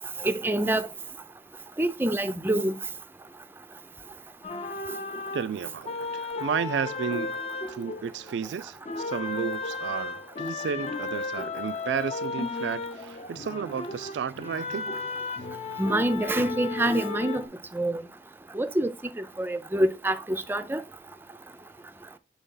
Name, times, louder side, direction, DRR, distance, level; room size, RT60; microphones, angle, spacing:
voice 1, 0.2-0.9 1.8-2.7 15.8-17.4 17.7-18.0 18.5-18.9 19.4-20.8, right 1 dB, 10° right, 0.4 m, -26 dB
sound 1, 4.4-8.5 8.9-17.5, left 3 dB, 35° left, 0.6 m, -34 dB
voice 2, 5.3-7.4 7.7-8.8 9.0-15.0, right 7 dB, 85° right, 0.3 m, -32 dB
6.6 x 4.0 x 3.8 m
head